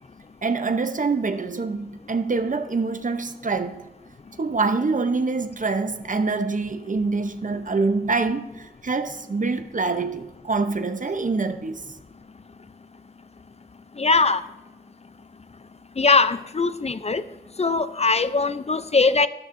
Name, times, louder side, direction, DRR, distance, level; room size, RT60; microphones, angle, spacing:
voice 1, 0.4-3.8 4.4-8.5 8.8-11.8, right 4 dB, 55° right, 0.7 m, -25 dB
voice 2, 14.0-14.4 16.0-17.2 17.6-19.3, left 4 dB, 40° left, 0.4 m, -20 dB
12.5 x 12.0 x 2.6 m
wide cardioid pair, 75°, 16 cm